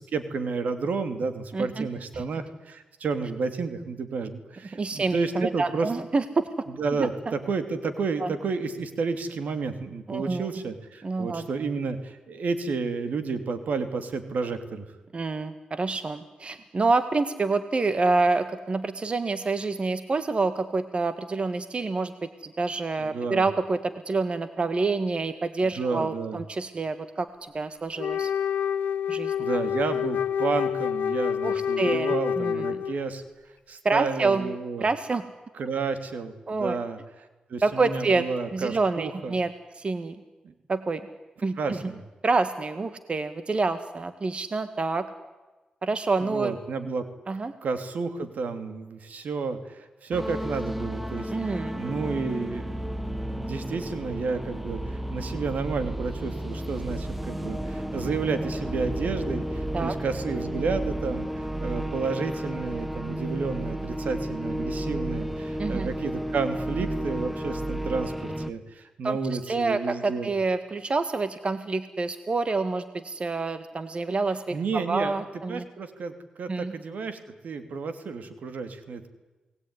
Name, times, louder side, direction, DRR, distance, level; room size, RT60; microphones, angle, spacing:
voice 1, 0.0-5.9 6.7-14.8 23.0-23.5 25.6-26.4 29.4-33.2 33.7-34.9 35.5-37.0 37.5-39.4 40.4-40.5 41.6-42.0 46.2-47.0 47.6-70.3 74.5-75.2 75.5-77.2 77.4-79.1, right 4 dB, 75° right, 9 dB, 2.9 m, -31 dB
voice 2, 1.5-1.9 2.1-2.2 4.7-6.5 7.0-7.3 8.2-8.3 10.1-10.5 11.0-11.5 15.1-28.3 29.1-29.5 31.4-32.7 33.8-34.5 34.8-35.2 36.5-36.8 37.6-38.2 38.5-40.2 40.7-41.0 41.4-41.8 42.2-45.1 45.8-46.6 47.3-47.5 51.3-51.8 59.7-59.9 65.6-65.9 69.0-69.2 69.5-75.7 76.5-76.7, right 3 dB, 45° right, 11 dB, 1.7 m, -27 dB
Wind instrument woodwind instrument, 28.0-33.1, left 8 dB, 85° left, 1.1 m, -27 dB
sound 1, 50.1-68.5, right 1 dB, 5° right, 1.6 m, -32 dB
29.0 x 20.0 x 9.9 m, 1.2 s
cardioid pair, 65°, 3 cm